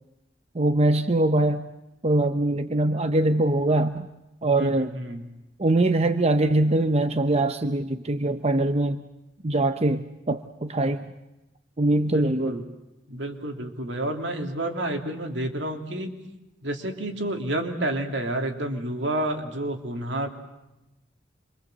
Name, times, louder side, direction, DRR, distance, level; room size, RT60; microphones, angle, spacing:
voice 1, 0.5-1.6 2.0-4.1 4.4-4.9 5.6-9.0 9.4-11.1 11.8-12.6, right 2 dB, 35° right, 9 dB, 0.9 m, -22 dB
voice 2, 4.6-5.3 12.1-12.6 13.1-16.1 16.6-20.3, right 1 dB, 70° right, 4 dB, 3.1 m, -29 dB
27.5 x 24.5 x 8.0 m, 0.94 s
head